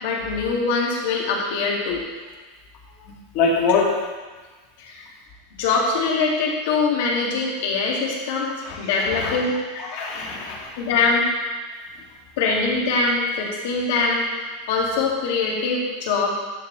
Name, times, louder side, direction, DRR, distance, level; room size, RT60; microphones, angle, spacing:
voice 1, 0.0-2.0 4.8-5.1 5.6-8.5 8.8-9.5 10.8-11.2 12.4-14.3 14.7-16.3, left 4 dB, 70° left, -2 dB, 2.1 m, -23 dB
voice 2, 3.3-3.9 8.6-9.4 9.8-10.8, left 4 dB, 55° left, -3 dB, 2.2 m, -24 dB
11.5 x 6.3 x 3.3 m, 1.3 s
supercardioid pair, 130°, 0 cm